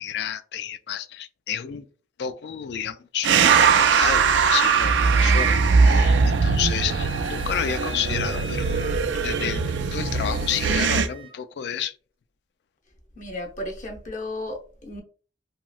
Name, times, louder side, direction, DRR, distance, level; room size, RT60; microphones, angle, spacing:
voice 1, 0.0-1.9 2.2-8.7 9.2-11.9, left 8 dB, 65° left, 0.3 m, -30 dB
sound 1, 3.2-11.1, right 5 dB, 90° right, 0.4 m, -20 dB
Wind instrument woodwind instrument, 3.5-11.4, equal, 30° right, 0.6 m, -43 dB
voice 2, 13.1-15.0, left 1 dB, 45° left, 0.7 m, -34 dB
2.9 x 2.9 x 2.3 m
head